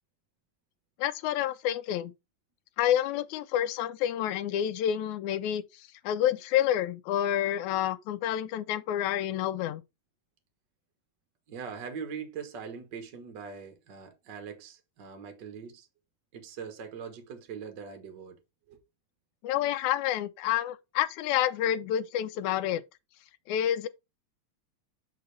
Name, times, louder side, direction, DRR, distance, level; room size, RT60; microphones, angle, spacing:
voice 1, 1.0-2.1 2.8-9.8 19.4-22.8 23.5-23.9, left 11 dB, 85° left, 2.0 m, -29 dB
voice 2, 11.5-15.9 16.3-18.4 18.7-18.8, right 6 dB, 45° right, 1.6 m, -42 dB
6.5 x 5.9 x 3.2 m
omnidirectional pair, 3.4 m